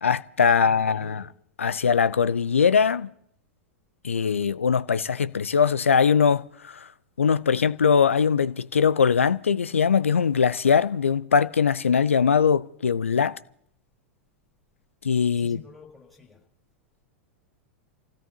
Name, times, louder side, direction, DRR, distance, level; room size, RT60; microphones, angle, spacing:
voice 1, 0.0-1.3 1.6-3.1 4.0-6.9 7.2-13.4 15.0-15.6, left 6 dB, 75° left, 0.5 m, -21 dB
voice 2, 0.6-1.3 15.3-16.4, left 4 dB, 5° left, 5.7 m, -49 dB
28.5 x 17.0 x 2.8 m
figure-of-eight pair, 95°, 7 cm